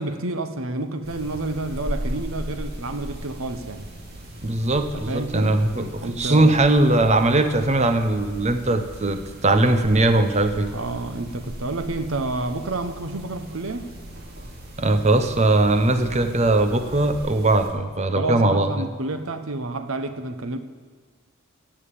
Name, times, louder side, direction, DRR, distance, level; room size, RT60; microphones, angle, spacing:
voice 1, 0.0-3.9 4.9-5.6 6.0-6.5 10.7-13.9 18.1-20.6, right 2 dB, 70° right, 9 dB, 1.0 m, -29 dB
sound 1, 1.0-17.7, equal, 50° right, 2.7 m, -37 dB
voice 2, 4.4-10.7 14.8-18.8, right 2 dB, 30° right, 8 dB, 0.9 m, -20 dB
14.5 x 7.3 x 8.6 m, 1.5 s
head